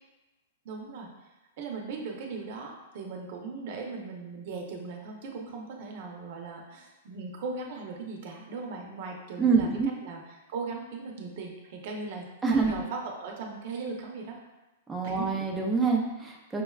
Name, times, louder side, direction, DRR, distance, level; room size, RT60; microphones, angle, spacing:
voice 1, 0.6-1.1 1.6-9.7 10.0-10.2 10.5-14.4 15.0-15.4, right 4 dB, 50° right, 1 dB, 0.7 m, -38 dB
voice 2, 9.4-9.9 12.4-12.8 14.9-16.6, right 4 dB, 10° right, -1 dB, 0.4 m, -26 dB
5.9 x 2.1 x 2.3 m, 1.0 s
hypercardioid pair, 155°, 0 cm